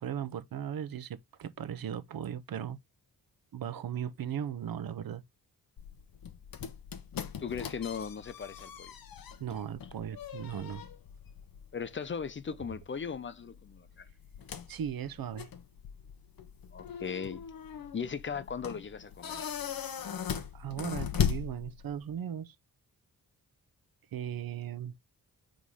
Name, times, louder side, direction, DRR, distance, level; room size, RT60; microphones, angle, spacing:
voice 1, 0.0-2.8 3.5-5.2 9.4-10.8 14.7-15.5 20.5-22.5 24.1-24.9, right 9 dB, 75° right, 0.8 m, -37 dB
sound 1, 5.8-22.1, left 8 dB, 80° left, 1.0 m, -39 dB
voice 2, 7.4-8.9 11.7-14.1 16.7-17.5 17.9-19.5, left 6 dB, 35° left, 0.5 m, -38 dB
5.6 x 3.8 x 4.7 m
wide cardioid pair, 150°, 35 cm